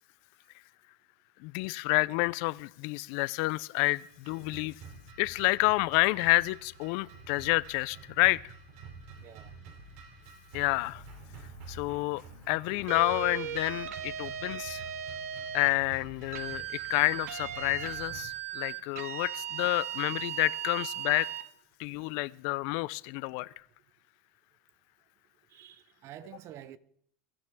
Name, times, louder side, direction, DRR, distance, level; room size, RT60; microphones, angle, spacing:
voice 1, 1.4-4.7 5.2-8.5 10.5-11.0 11.7-14.8 15.5-21.3 21.8-23.5, left 23 dB, 50° left, 0.5 m, -29 dB
sound 1, 4.0-18.2, right 3 dB, 50° right, 3.3 m, -49 dB
voice 2, 9.2-9.5 25.5-26.8, right 12 dB, 35° right, 0.7 m, -48 dB
sound 2, 12.9-15.7 16.3-21.5, right 10 dB, 80° right, 1.4 m, -37 dB
22.5 x 14.0 x 3.6 m
supercardioid pair, 155°, 8 cm